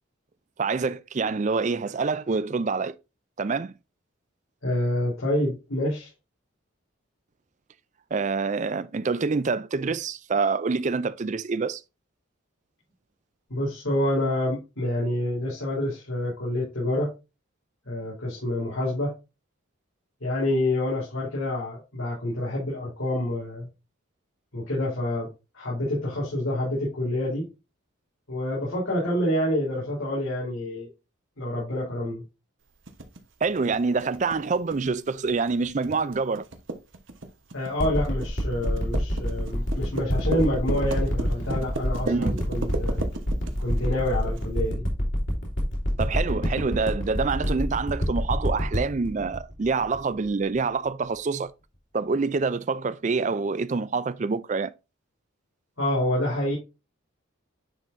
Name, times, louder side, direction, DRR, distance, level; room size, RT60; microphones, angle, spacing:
voice 1, 0.6-2.9 3.4-3.7 8.1-11.8 33.4-36.4 42.1-42.5 46.0-51.5 51.9-54.7, right 4 dB, 35° right, 0.4 m, -26 dB
voice 2, 4.6-6.1 13.5-17.1 17.9-19.1 20.2-23.7 24.5-27.5 28.3-30.9 31.4-32.2 37.5-43.0 43.6-44.8 55.8-56.6, left 1 dB, 85° left, 3.6 m, -27 dB
sound 1, 32.9-44.4, right 2 dB, 65° right, 1.1 m, -35 dB
sound 2, 37.8-50.6 51.1-51.2, equal, 60° left, 2.7 m, -27 dB
9.8 x 4.4 x 2.6 m
head